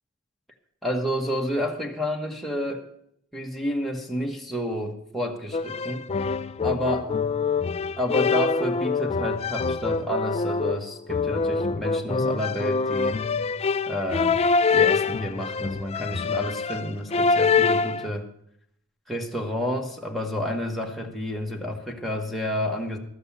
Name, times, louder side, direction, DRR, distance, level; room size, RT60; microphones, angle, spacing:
voice 1, 0.8-2.9 3.3-6.1 6.6-7.1 8.0-13.2 13.9-14.4 14.7-18.3 19.1-23.0, equal, ahead, 0 dB, 1.2 m, -30 dB
sound 1, 5.5-18.1, left 4 dB, 30° left, 0.4 m, -25 dB
12.5 x 7.9 x 7.0 m, 0.72 s
head